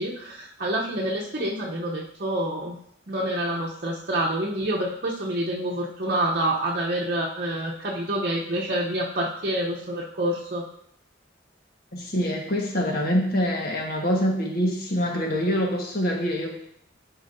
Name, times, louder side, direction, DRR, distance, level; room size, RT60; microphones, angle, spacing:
voice 1, 0.0-2.8 3.1-10.6, right 1 dB, 50° right, -4 dB, 0.8 m, -27 dB
voice 2, 11.9-16.5, equal, 55° left, 0 dB, 1.4 m, -25 dB
11.0 x 4.8 x 2.6 m, 0.73 s
head